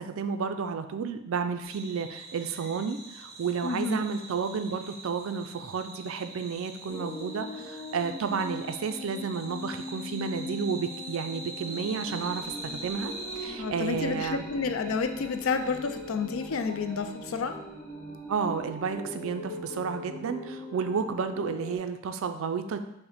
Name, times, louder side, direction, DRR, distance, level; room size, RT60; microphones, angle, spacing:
voice 1, 0.0-14.5 18.3-22.8, right 5 dB, 65° right, 8 dB, 0.4 m, -32 dB
sound 1, 1.6-13.5, right 2 dB, 45° right, 0.7 m, -43 dB
voice 2, 3.6-4.0 13.6-17.6, left 5 dB, 65° left, 8 dB, 0.4 m, -30 dB
sound 2, 6.9-21.8, left 1 dB, 25° left, 0.7 m, -40 dB
sound 3, 11.4-21.2, equal, 5° left, 1.0 m, -51 dB
5.5 x 2.1 x 4.1 m, 0.84 s
head